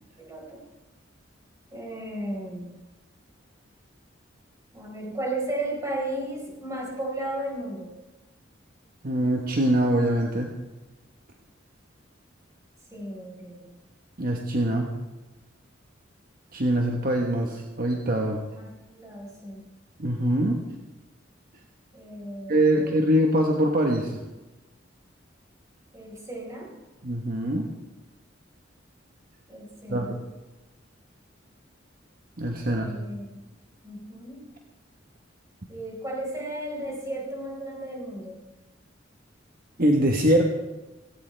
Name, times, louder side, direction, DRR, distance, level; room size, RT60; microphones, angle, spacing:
voice 1, 0.2-0.6 1.7-2.7 4.7-7.9 12.9-13.7 18.6-19.6 21.9-23.0 25.9-26.7 29.5-30.2 32.6-33.2 33.8-34.5 35.7-38.4, right 1 dB, 15° right, -2 dB, 4.8 m, -34 dB
voice 2, 9.0-10.5 14.2-14.9 16.5-18.4 20.0-20.6 22.5-24.2 27.0-27.7 29.9-30.1 32.4-32.9 39.8-40.5, right 1 dB, 50° right, 1 dB, 1.3 m, -23 dB
17.5 x 17.0 x 3.4 m, 1.1 s
head